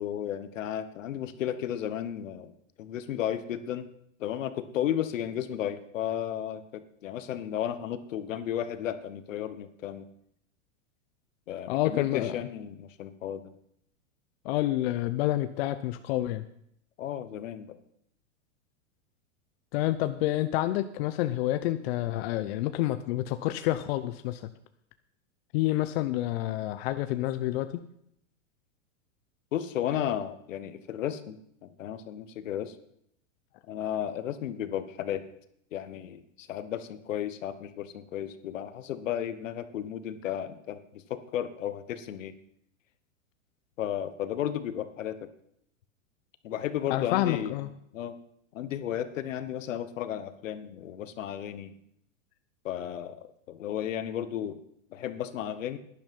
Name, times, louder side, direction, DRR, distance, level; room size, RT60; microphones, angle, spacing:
voice 1, 0.0-2.5 2.8-3.9 4.2-10.1 11.5-13.5 17.0-17.8 29.5-32.7 33.7-35.2 35.7-42.3 43.8-45.3 46.4-47.5 47.9-48.1 48.5-51.7 52.6-54.6 54.9-55.8, left 10 dB, 75° left, 12 dB, 1.3 m, -34 dB
voice 2, 11.7-12.5 14.4-16.4 19.7-24.4 25.5-27.7 46.9-47.7, left 15 dB, 50° left, 10 dB, 0.8 m, -28 dB
11.5 x 10.5 x 5.3 m, 0.72 s
hypercardioid pair, 130°, 39 cm